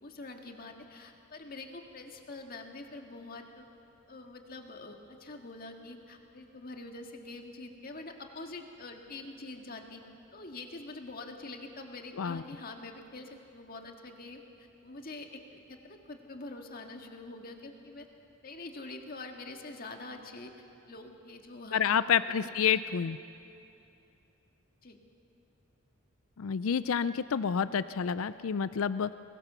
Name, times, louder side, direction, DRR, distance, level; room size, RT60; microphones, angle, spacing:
voice 1, 0.0-3.7 4.1-10.0 10.3-18.1 18.4-20.5 20.9-21.8 22.1-22.8 24.8-25.0, left 2 dB, 45° left, 3 dB, 1.9 m, -45 dB
voice 2, 21.7-23.2 26.4-29.1, left 7 dB, 80° left, 15 dB, 0.4 m, -29 dB
23.5 x 21.0 x 6.8 m, 2.7 s
head